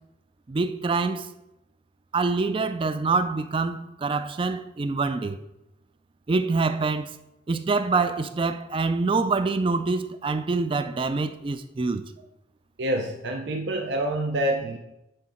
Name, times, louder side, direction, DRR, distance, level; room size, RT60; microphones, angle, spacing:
voice 1, 0.5-1.3 2.1-5.4 6.3-7.2 7.5-12.0, right 4 dB, 30° right, 0.4 m, -25 dB
voice 2, 12.8-14.8, right 1 dB, 70° right, 0.6 m, -27 dB
10.0 x 3.6 x 4.3 m
head